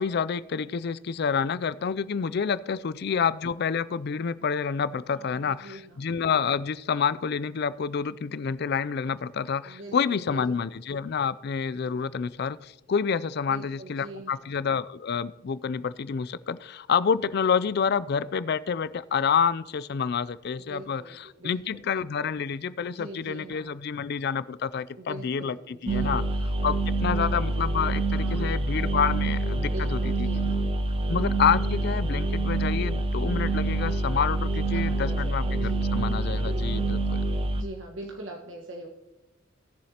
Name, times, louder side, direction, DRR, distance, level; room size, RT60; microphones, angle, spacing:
voice 1, 0.0-26.2 26.6-30.3 31.1-37.0, left 6 dB, 55° left, 16 dB, 0.4 m, -28 dB
voice 2, 2.4-2.9 5.1-6.0 9.6-10.7 13.5-14.5 20.6-21.8 22.8-23.7 25.0-26.2 28.1-28.5 29.6-30.6 34.7-36.9 37.6-38.9, right 1 dB, 70° right, 1 dB, 1.4 m, -43 dB
sound 1, 25.9-37.6, right 2 dB, 25° right, 0.7 m, -26 dB
17.0 x 7.2 x 2.9 m, 1.0 s
head